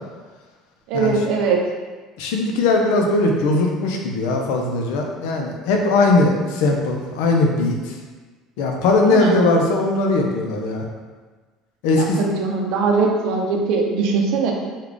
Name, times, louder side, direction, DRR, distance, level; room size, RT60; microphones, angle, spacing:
voice 1, 0.9-1.7 9.1-9.6 11.9-14.5, right 4 dB, 75° right, 1 dB, 0.6 m, -21 dB
voice 2, 2.2-7.8 8.6-10.8 11.8-12.2, left 2 dB, 85° left, 1 dB, 0.6 m, -19 dB
3.6 x 2.4 x 3.5 m, 1.4 s
cardioid pair, 125°, 0 cm